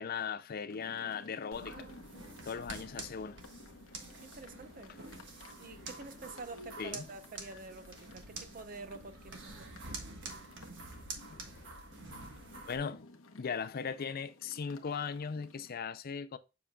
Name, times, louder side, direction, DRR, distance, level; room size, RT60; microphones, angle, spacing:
voice 1, 0.0-1.9 2.4-3.4 4.1-4.2 6.8-7.1 10.9-11.0 11.3-11.7 12.7-13.1 13.3-16.4, left 6 dB, 45° left, 0.4 m, -38 dB
sound 1, 0.7-15.8, left 2 dB, 65° left, 1.0 m, -56 dB
sound 2, 1.5-12.8, right 3 dB, 55° right, 1.3 m, -48 dB
voice 2, 4.2-4.9 5.6-9.7, right 3 dB, 40° right, 0.7 m, -48 dB
7.2 x 5.7 x 2.3 m
head